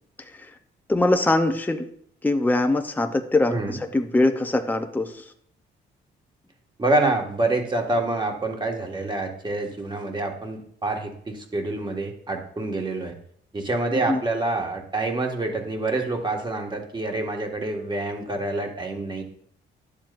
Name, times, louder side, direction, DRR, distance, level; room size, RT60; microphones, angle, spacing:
voice 1, 0.2-0.5 0.9-1.9 2.2-5.2 13.9-14.2, left 2 dB, 10° left, 6 dB, 0.7 m, -23 dB
voice 2, 6.8-13.1 13.5-19.2, right 2 dB, 25° right, 2 dB, 1.7 m, -27 dB
11.0 x 7.3 x 2.5 m, 0.66 s
cardioid pair, 90°, 20 cm